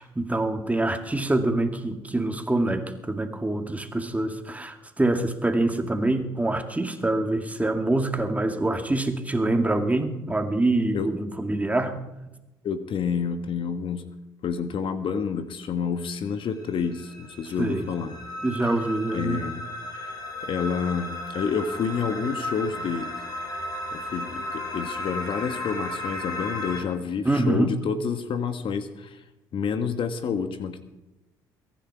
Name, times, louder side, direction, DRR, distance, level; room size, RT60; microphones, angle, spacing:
voice 1, 0.0-12.0 17.6-17.9 18.4-19.4 27.3-27.7, right 2 dB, 15° right, 6 dB, 2.2 m, -25 dB
voice 2, 12.6-14.0 14.4-18.2 19.1-23.2 23.9-29.2 29.5-30.8, left 6 dB, 55° left, 9 dB, 1.5 m, -29 dB
sound 1, 16.2-26.8, left 1 dB, 35° left, 4.2 m, -35 dB
22.5 x 10.5 x 4.8 m, 0.98 s
hypercardioid pair, 60°, 11 cm